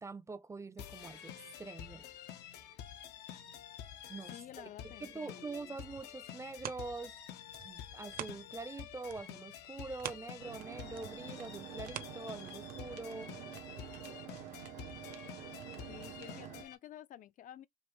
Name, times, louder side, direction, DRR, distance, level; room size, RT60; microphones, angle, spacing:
voice 1, 0.0-2.0 4.1-7.2 7.6-13.3, right 3 dB, 15° right, 0.4 m, -45 dB
sound 1, 0.8-16.7, left 10 dB, 85° left, 0.9 m, -49 dB
voice 2, 4.3-5.8 15.9-17.7, left 11 dB, 50° left, 0.4 m, -52 dB
sound 2, 5.8-8.8 9.0-12.9 13.4-13.5, right 11 dB, 55° right, 0.7 m, -48 dB
sound 3, 10.4-16.6, right 10 dB, 90° right, 0.9 m, -48 dB
5.3 x 2.5 x 3.1 m
cardioid pair, 110°, 17 cm